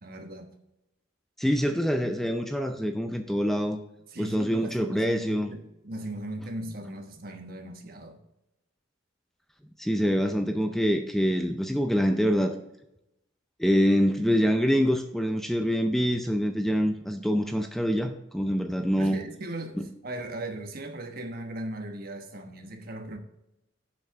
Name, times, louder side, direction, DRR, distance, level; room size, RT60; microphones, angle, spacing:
voice 1, 0.0-0.5 4.1-8.2 19.0-23.2, right 1 dB, 50° right, 5 dB, 1.1 m, -38 dB
voice 2, 1.4-3.8 4.2-5.5 9.8-12.6 13.6-19.2 19.8-19.9, equal, ahead, 5 dB, 0.5 m, -25 dB
7.6 x 5.8 x 4.6 m, 0.87 s
head